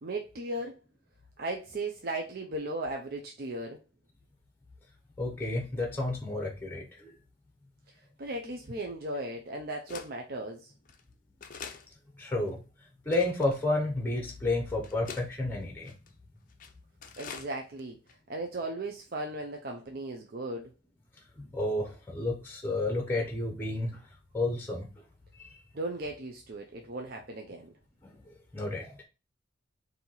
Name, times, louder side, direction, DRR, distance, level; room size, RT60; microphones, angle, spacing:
voice 1, 0.0-0.7 1.4-3.8 8.2-10.7 17.2-18.0 18.3-20.7 25.7-27.7, right 2 dB, 50° right, 0.5 m, -36 dB
voice 2, 5.2-7.1 12.2-12.6 13.1-15.9 21.4-24.0 24.3-24.9 25.4-25.5 28.0-29.0, left 2 dB, 10° left, 0.7 m, -31 dB
sound 1, 8.3-8.4 9.1-9.2 9.9-10.1 10.8-11.0 11.4-11.9 12.5-12.6 13.1-13.6 14.3-14.4 14.8-15.3 15.8-16.1 16.5-16.7 17.0-17.5 17.8-17.9 18.1-18.2, left 6 dB, 45° left, 0.4 m, -44 dB
4.3 x 2.7 x 4.0 m
head